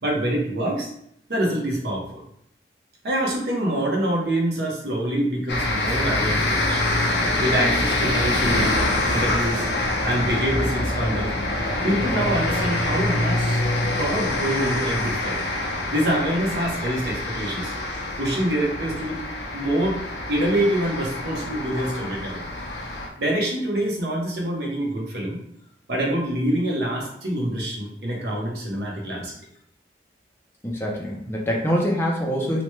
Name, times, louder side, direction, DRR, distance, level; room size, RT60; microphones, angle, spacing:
voice 1, 0.0-0.9 1.3-2.2 3.0-6.9 7.4-8.7 9.1-9.7 10.0-11.3 11.8-13.6 14.0-15.4 15.9-17.7 18.2-20.0 20.3-22.4 23.2-25.4 25.9-29.3, right 1 dB, 70° right, -2 dB, 0.8 m, -25 dB
sound 1, 5.5-23.1, left 2 dB, 80° left, 0.6 m, -25 dB
voice 2, 30.6-32.6, equal, 15° left, -1 dB, 0.4 m, -24 dB
3.0 x 2.1 x 3.0 m, 0.69 s
head